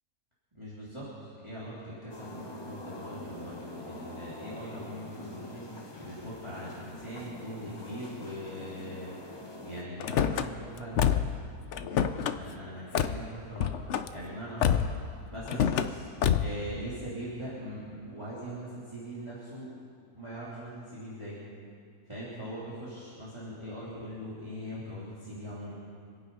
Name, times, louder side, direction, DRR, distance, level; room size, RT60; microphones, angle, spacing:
voice 1, 0.5-11.1 11.8-13.7 14.1-14.8 15.3-16.0 16.4-19.7 20.1-21.4 22.1-25.7, equal, 15° right, -10 dB, 3.2 m, -41 dB
sound 1, 2.1-9.8, left 2 dB, 20° left, 0.9 m, -44 dB
Car / Slam, 10.0-10.5 11.0-11.4 11.7-12.4 13.0-13.2 13.6-14.1 14.6-15.0 15.5-15.9 16.2-16.6, left 8 dB, 60° left, 0.8 m, -26 dB
26.0 x 9.0 x 5.5 m, 2.3 s
omnidirectional pair, 1.7 m